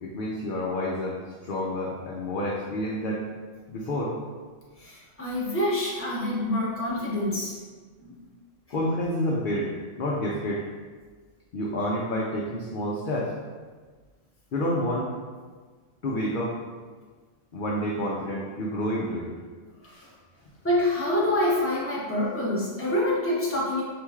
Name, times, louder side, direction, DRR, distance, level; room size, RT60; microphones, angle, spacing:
voice 1, 0.0-3.2 3.7-4.1 8.7-9.7 10.0-10.7 11.5-13.3 14.5-15.1 16.0-16.5 17.5-19.3 19.9-20.1, left 1 dB, 60° left, -4 dB, 0.5 m, -29 dB
voice 2, 4.8-7.5 8.0-8.1 20.6-23.8, left 1 dB, 10° left, -6 dB, 0.8 m, -26 dB
5.0 x 3.1 x 2.3 m, 1.5 s
omnidirectional pair, 1.4 m